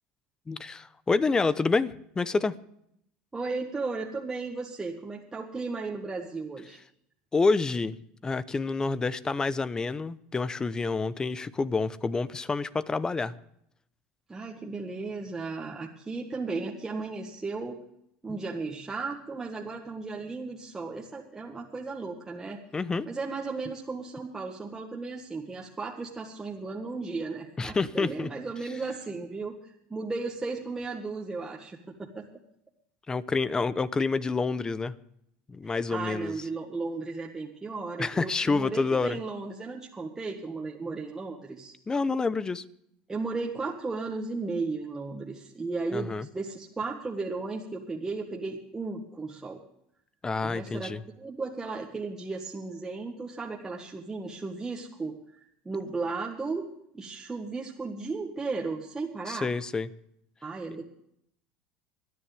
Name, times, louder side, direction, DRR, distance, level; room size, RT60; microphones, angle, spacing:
voice 1, 0.5-2.5 7.3-8.0 8.2-13.3 18.3-18.4 22.7-23.1 27.6-28.3 33.1-34.9 35.5-36.3 38.0-39.2 41.9-42.6 45.9-46.3 50.2-51.0 59.3-59.9, left 4 dB, 15° left, 16 dB, 0.8 m, -28 dB
voice 2, 3.3-6.8 14.3-17.8 18.2-22.6 23.1-32.3 35.6-41.7 43.1-49.6 50.4-50.9 51.2-55.4 55.6-56.7 56.9-59.5 60.4-60.8, right 3 dB, 15° right, -1 dB, 1.6 m, -35 dB
26.0 x 10.0 x 3.4 m, 0.73 s
supercardioid pair, 115°, 4 cm